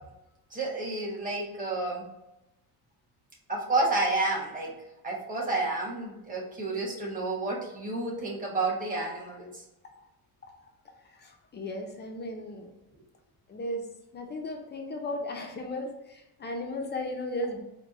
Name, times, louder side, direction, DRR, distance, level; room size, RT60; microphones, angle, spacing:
voice 1, 0.5-2.0 3.5-4.7 5.0-9.6, right 2 dB, 20° right, -3 dB, 1.3 m, -30 dB
voice 2, 11.1-12.7 13.5-13.9 14.1-17.6, left 1 dB, 30° left, 2 dB, 0.5 m, -35 dB
4.6 x 2.2 x 4.0 m, 0.93 s
cardioid pair, 155°, 37 cm